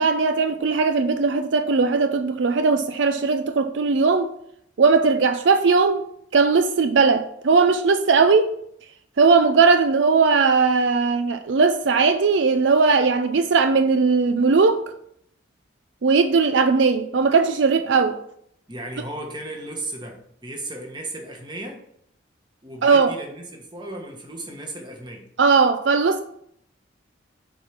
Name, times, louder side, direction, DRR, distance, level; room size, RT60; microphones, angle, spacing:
voice 1, 0.0-4.3 4.8-6.0 6.3-8.5 9.2-14.8 16.0-18.2 22.8-23.1 25.4-26.2, right 4 dB, 70° right, 0.5 m, -18 dB
voice 2, 18.7-21.8 22.6-25.3, right 1 dB, 25° right, 1.4 m, -35 dB
6.9 x 4.6 x 5.8 m
head